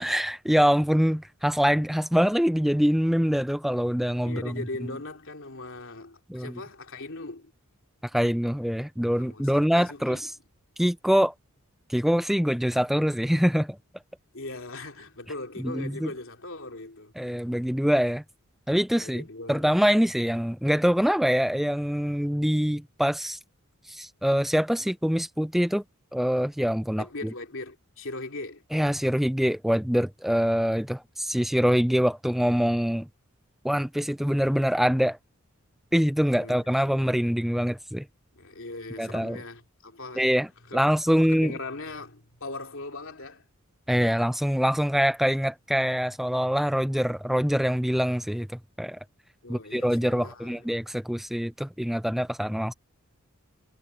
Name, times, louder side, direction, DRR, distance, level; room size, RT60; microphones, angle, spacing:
voice 1, 0.0-4.5 6.3-6.6 8.1-10.3 10.8-11.3 11.9-13.8 15.6-16.1 17.2-18.2 18.7-23.4 23.9-25.8 26.1-27.0 28.7-33.1 33.6-35.2 35.9-38.0 39.0-39.4 40.2-41.5 43.9-48.5 48.8-49.0 49.5-52.7, equal, ahead, 0.4 m, -24 dB
voice 2, 4.2-7.5 9.2-10.3 14.3-17.1 19.0-19.8 27.0-28.6 36.4-37.0 38.3-40.4 40.7-40.8 41.1-43.5 49.4-50.7, left 2 dB, 60° left, 3.5 m, -39 dB
head